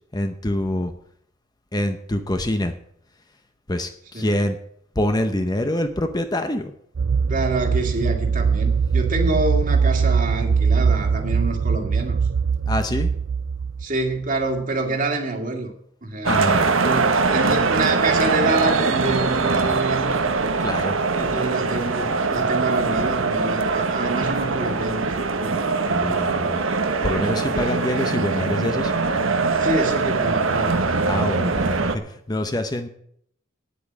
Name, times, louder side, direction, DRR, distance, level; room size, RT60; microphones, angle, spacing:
voice 1, 0.1-0.9 1.7-2.7 3.7-4.6 5.0-6.7 12.7-13.1 16.3-16.6 20.6-21.0 25.9-26.6 27.0-28.9 31.1-31.7 32.0-32.9, left 1 dB, 20° left, 7 dB, 0.7 m, -25 dB
sound 1, 7.0-14.3, right 5 dB, 60° right, 0.4 m, -21 dB
voice 2, 7.3-12.2 13.8-15.7 16.0-16.3 16.8-20.2 21.1-25.6 26.0-26.3 29.6-31.0 31.4-31.8, right 2 dB, 40° right, 4 dB, 2.0 m, -27 dB
sound 2, 16.2-32.0, right 4 dB, 80° right, 1.1 m, -22 dB
9.5 x 8.4 x 8.5 m, 0.69 s
head